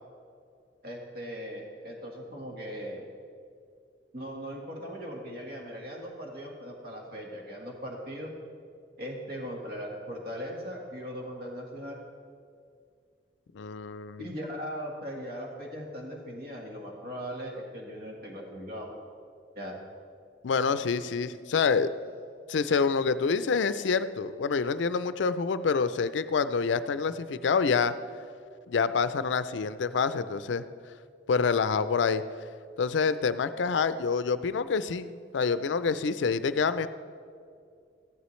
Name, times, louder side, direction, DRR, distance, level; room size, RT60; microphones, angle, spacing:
voice 1, 0.8-3.0 4.1-8.3 9.0-12.0 14.2-18.9 19.5-19.7, equal, 50° right, 0 dB, 1.5 m, -39 dB
voice 2, 13.5-14.3 20.4-21.9 22.5-27.9 28.7-30.7 31.3-32.2 32.8-36.9, left 5 dB, 80° left, 13 dB, 0.4 m, -27 dB
14.5 x 11.0 x 3.2 m, 2.3 s
head